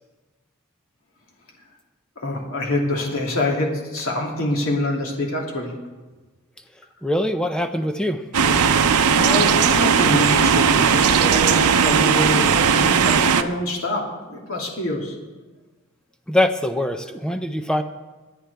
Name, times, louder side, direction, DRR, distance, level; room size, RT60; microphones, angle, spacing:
voice 1, 2.2-5.7 8.9-15.1, left 1 dB, 70° left, -1 dB, 2.7 m, -25 dB
voice 2, 7.0-8.2 16.3-17.8, left 1 dB, 5° left, 7 dB, 0.6 m, -23 dB
sound 1, 8.3-13.4, right 6 dB, 90° right, 0.7 m, -17 dB
26.0 x 9.6 x 3.5 m, 1.2 s
head